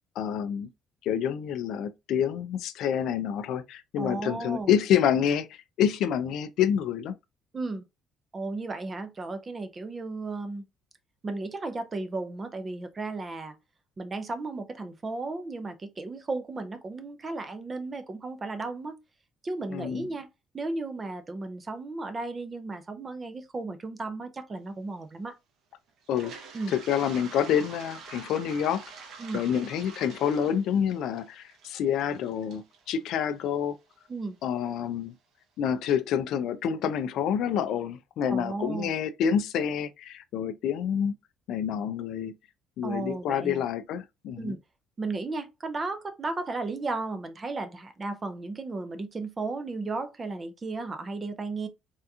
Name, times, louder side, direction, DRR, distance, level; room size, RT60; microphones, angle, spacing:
voice 1, 0.2-0.7 1.0-7.2 19.7-20.1 26.1-26.3 26.7-28.8 29.3-33.8 34.4-35.1 35.6-41.2 41.5-42.3 42.8-44.5, left 8 dB, 60° left, 0.3 m, -28 dB
voice 2, 4.0-4.7 7.5-7.8 8.3-10.6 11.2-13.6 14.0-19.0 19.4-20.3 20.5-25.4 26.5-26.8 29.2-29.4 34.1-34.4 38.3-38.9 42.8-43.6 44.4-44.6 45.0-51.7, right 3 dB, 20° right, 0.4 m, -34 dB
Toilet flush, 26.0-33.9, right 4 dB, 50° right, 0.7 m, -46 dB
3.4 x 2.8 x 2.3 m
cardioid pair, 170°, 0 cm